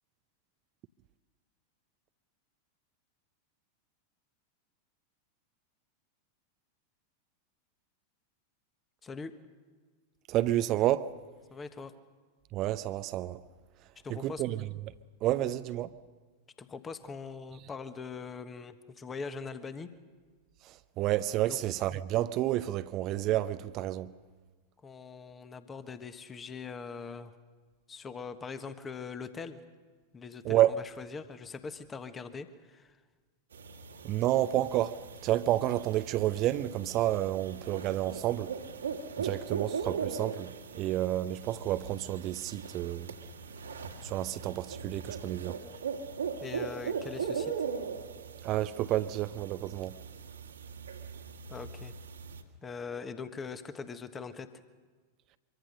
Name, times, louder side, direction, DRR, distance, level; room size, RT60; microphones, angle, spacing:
voice 1, 9.0-9.3 11.5-11.9 14.0-14.4 16.6-19.9 21.5-21.6 24.8-27.3 27.9-29.6 30.1-33.0 46.4-47.5 51.5-51.9 52.6-54.5, left 5 dB, 20° left, 1.3 m, -42 dB
voice 2, 10.3-11.1 12.5-13.4 14.1-14.7 15.2-15.9 20.7-24.1 30.4-30.8 34.0-38.5 39.2-43.2 44.0-45.6 48.4-50.0, right 14 dB, 35° right, 0.7 m, -30 dB
sound 1, 33.5-52.4, right 6 dB, 70° right, 2.0 m, -40 dB
25.0 x 23.5 x 6.5 m
figure-of-eight pair, 90°, 0 cm